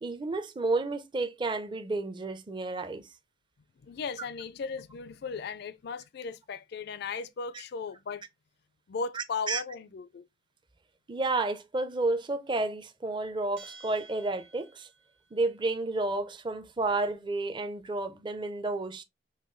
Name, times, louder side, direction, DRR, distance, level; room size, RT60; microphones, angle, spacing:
voice 1, 0.0-3.1 9.1-9.6 11.1-14.9 15.3-19.0, right 2 dB, 25° right, 0.5 m, -31 dB
voice 2, 3.8-8.2 8.9-10.2, left 5 dB, 60° left, 0.4 m, -36 dB
Bell, 13.6-15.1, right 4 dB, 75° right, 1.6 m, -51 dB
5.5 x 2.2 x 3.1 m
head